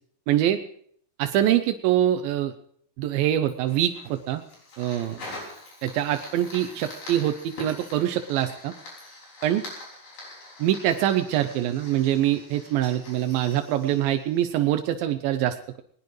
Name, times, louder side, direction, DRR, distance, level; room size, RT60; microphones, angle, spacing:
voice 1, 0.3-0.6 1.2-2.5 3.0-4.4 4.8-5.2 5.8-8.7 9.4-9.6 10.6-15.8, right 12 dB, 85° right, 8 dB, 2.1 m, -24 dB
Fire, 3.5-14.9, left 2 dB, 60° left, 7.4 m, -44 dB
20.0 x 19.5 x 3.2 m, 0.62 s
omnidirectional pair, 5.0 m